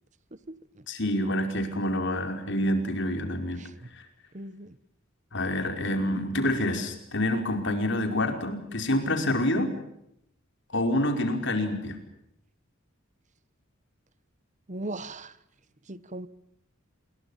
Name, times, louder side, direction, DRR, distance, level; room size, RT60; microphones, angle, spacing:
voice 1, 0.9-3.6 3.9-4.1 5.3-9.7 10.7-12.0, left 1 dB, 60° left, 5.1 m, -27 dB
voice 2, 4.3-4.7 14.7-15.3 15.9-16.3, right 2 dB, 35° right, 1.1 m, -38 dB
28.5 x 22.5 x 7.3 m
head